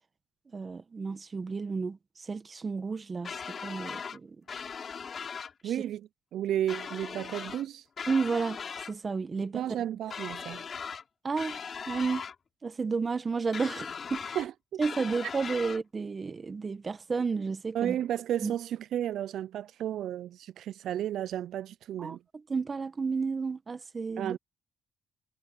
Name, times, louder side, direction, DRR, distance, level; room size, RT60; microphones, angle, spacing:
voice 1, 0.5-4.4 5.6-5.7 8.1-9.6 11.2-12.2 12.6-14.4 14.8-18.0 18.4-18.5 22.0-22.2 22.5-24.4, right 4 dB, 35° right, 1.2 m, -32 dB
sound 1, 3.2-4.2 4.5-5.5 6.7-7.6 8.0-8.9 10.1-11.0 11.4-12.3 13.5-14.5 14.8-15.8, left 6 dB, 50° left, 3.1 m, -39 dB
voice 2, 5.6-7.9 9.4-10.6 14.4-14.8 17.7-22.2 24.2-24.4, right 11 dB, 75° right, 0.3 m, -33 dB
cardioid pair, 90°, 0 cm